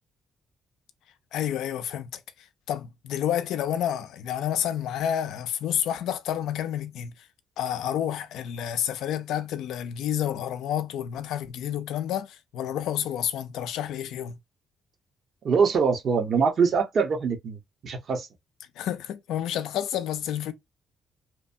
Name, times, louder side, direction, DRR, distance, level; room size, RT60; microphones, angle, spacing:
voice 1, 1.3-7.1 7.6-14.4 18.8-20.5, left 10 dB, 85° left, 0.4 m, -30 dB
voice 2, 15.4-17.6 17.8-18.3, right 5 dB, 55° right, 0.9 m, -23 dB
3.0 x 2.1 x 2.5 m
cardioid pair, 90°, 0 cm